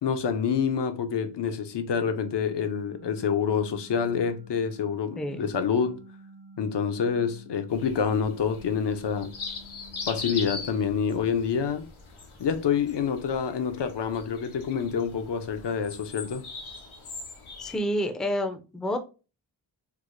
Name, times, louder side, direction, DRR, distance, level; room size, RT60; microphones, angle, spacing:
voice 1, 0.0-6.0 6.6-9.3 10.1-11.9 12.4-16.5, left 7 dB, 60° left, 0.6 m, -27 dB
sound 1, 2.1-11.0, equal, 65° right, 1.0 m, -51 dB
sound 2, 7.7-17.8, left 4 dB, 90° left, 0.9 m, -41 dB
voice 2, 17.6-19.0, equal, ahead, 0.4 m, -29 dB
4.7 x 2.0 x 2.4 m
wide cardioid pair, 85°, 47 cm